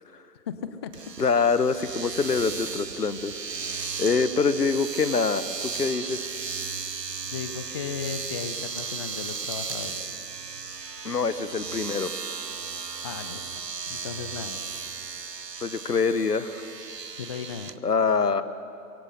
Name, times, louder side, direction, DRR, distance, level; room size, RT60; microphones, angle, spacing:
voice 1, 0.5-0.9 7.2-10.0 13.0-13.6 13.9-14.6 17.2-17.7, left 7 dB, 20° left, 10 dB, 0.5 m, -36 dB
Domestic sounds home sounds, 0.9-17.8, right 5 dB, 85° right, 0.9 m, -35 dB
voice 2, 1.2-3.3 3.7-6.2 11.0-12.1 15.6-16.6 17.8-18.4, left 5 dB, 75° left, 13 dB, 1.3 m, -25 dB
25.0 x 23.5 x 6.7 m, 2.6 s
figure-of-eight pair, 115°, 47 cm